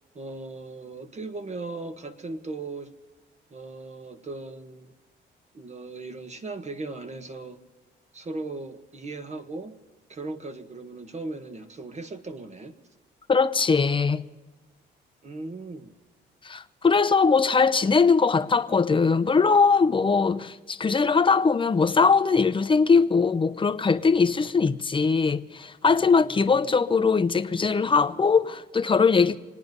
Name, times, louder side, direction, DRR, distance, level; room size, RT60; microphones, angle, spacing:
voice 1, 0.1-2.9 3.5-4.9 5.5-7.6 8.1-9.8 10.1-12.8 15.2-15.9 26.2-26.8, right 3 dB, 35° right, 1.5 m, -38 dB
voice 2, 13.3-14.2 16.4-29.4, left 5 dB, 25° left, 0.8 m, -21 dB
25.5 x 9.5 x 5.4 m
cardioid pair, 90°, 20 cm